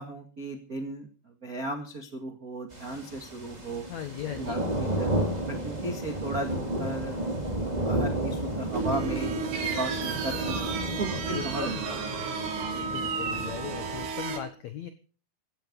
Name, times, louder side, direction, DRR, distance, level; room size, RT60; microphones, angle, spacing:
voice 1, 0.0-3.9 4.4-5.1 5.5-7.2 7.6-10.6 11.0-11.7 12.7-12.9, right 2 dB, 50° right, 4 dB, 1.0 m, -36 dB
sound 1, 2.7-14.1, right 1 dB, 10° right, 2.5 m, -32 dB
voice 2, 3.9-4.6 10.7-11.8 12.8-14.9, left 10 dB, 80° left, 9 dB, 1.6 m, -38 dB
sound 2, 8.7-14.4, right 5 dB, 85° right, 4.9 m, -33 dB
16.5 x 13.5 x 5.2 m, 0.38 s
omnidirectional pair, 5.0 m